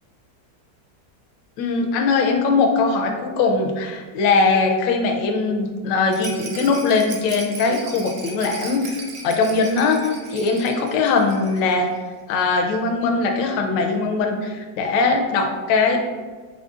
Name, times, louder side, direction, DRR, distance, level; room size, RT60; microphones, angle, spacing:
voice 1, 1.6-11.9 12.3-16.0, left 4 dB, 80° left, 3 dB, 1.2 m, -21 dB
Rattle, 6.1-11.8 12.1-12.2 12.4-12.5, right 4 dB, 70° right, 1.2 m, -37 dB
4.1 x 3.7 x 2.4 m, 1.5 s
omnidirectional pair, 2.0 m